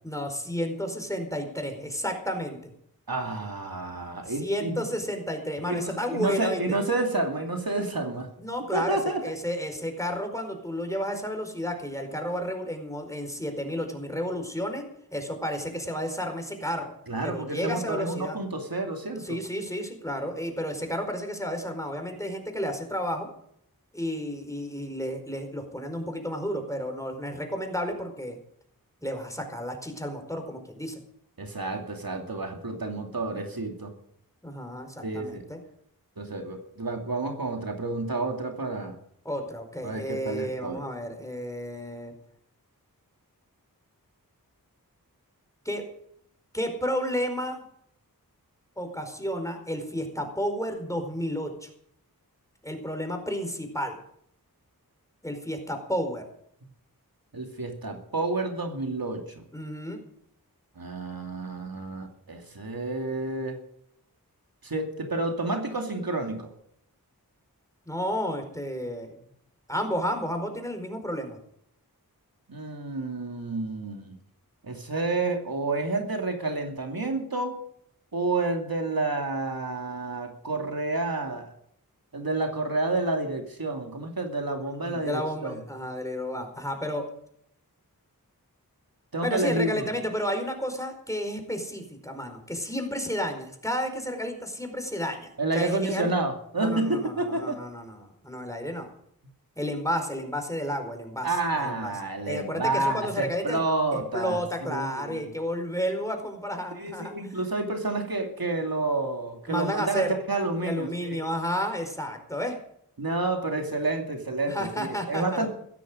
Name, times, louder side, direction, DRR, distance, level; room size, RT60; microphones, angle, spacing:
voice 1, 0.0-2.7 4.3-6.8 8.4-14.8 15.1-16.9 17.2-18.4 19.2-23.3 23.9-28.4 29.0-31.0 34.4-35.6 39.2-42.1 45.6-45.8 46.5-47.6 48.8-51.7 52.6-54.0 55.2-56.2 59.5-60.0 67.9-69.2 69.7-71.4 84.8-87.1 89.2-96.1 96.6-98.9 99.6-101.9 102.2-103.6 103.9-107.1 109.5-110.2 110.6-112.5 114.5-115.5, equal, 10° left, 5 dB, 4.7 m, -32 dB
voice 2, 3.1-4.8 5.6-8.3 8.7-9.2 17.1-19.4 31.4-33.9 35.0-35.4 36.2-39.0 39.8-40.8 57.3-59.4 60.8-63.6 64.6-66.5 72.5-74.2 74.6-77.6 78.1-81.5 82.1-85.6 89.1-89.8 95.4-97.6 101.2-105.3 106.8-111.2 113.0-115.5, right 2 dB, 75° right, 3 dB, 2.6 m, -29 dB
16.0 x 13.5 x 5.1 m, 0.68 s
wide cardioid pair, 45°, 36 cm